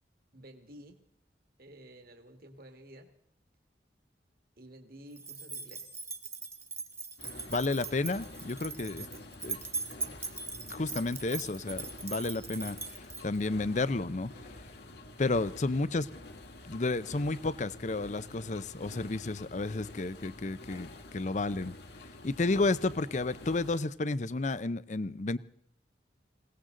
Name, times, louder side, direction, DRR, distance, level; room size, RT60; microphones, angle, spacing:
voice 1, 0.3-1.0 1.6-3.1 4.6-5.9, right 1 dB, 55° right, 1.9 m, -51 dB
sound 1, 5.2-13.5, right 4 dB, 15° right, 1.1 m, -40 dB
sound 2, 7.2-23.8, left 1 dB, 65° left, 1.9 m, -48 dB
voice 2, 7.5-9.1 9.4-9.6 10.7-14.6 15.2-16.1 16.6-21.7 22.2-25.4, left 3 dB, 40° left, 0.6 m, -32 dB
21.0 x 18.0 x 3.8 m
head